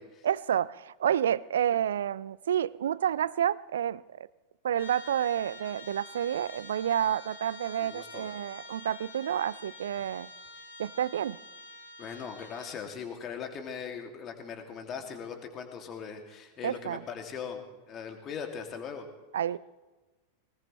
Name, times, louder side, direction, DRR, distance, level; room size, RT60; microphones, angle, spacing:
voice 1, 0.2-4.0 4.6-10.3 10.8-11.4 16.6-17.0 19.3-19.6, right 10 dB, 65° right, 21 dB, 0.4 m, -29 dB
Trumpet, 4.7-12.8, left 2 dB, 65° left, 2.8 m, -48 dB
voice 2, 7.8-8.3 12.0-19.1, left 6 dB, 30° left, 5 dB, 2.4 m, -40 dB
21.0 x 19.5 x 3.2 m, 1.2 s
figure-of-eight pair, 90°, 0 cm